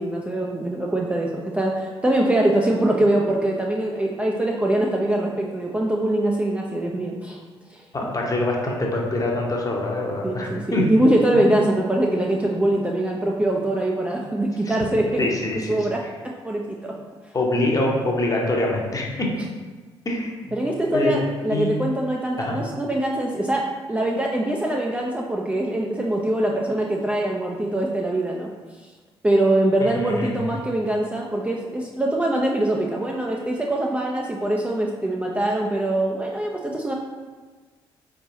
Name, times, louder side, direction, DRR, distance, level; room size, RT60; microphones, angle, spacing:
voice 1, 0.0-7.4 7.7-7.8 10.2-15.3 15.5-16.0 16.4-17.0 20.5-28.5 29.2-36.9, right 1 dB, 10° right, -2 dB, 0.4 m, -23 dB
voice 2, 7.9-10.9 11.3-11.5 14.6-14.8 15.2-15.9 17.3-19.3 20.0-20.6 20.9-21.2 21.5-21.7 22.4-22.6 29.8-30.4, left 1 dB, 25° left, -1 dB, 0.9 m, -25 dB
4.2 x 3.3 x 2.7 m, 1.4 s
figure-of-eight pair, 45°, 13 cm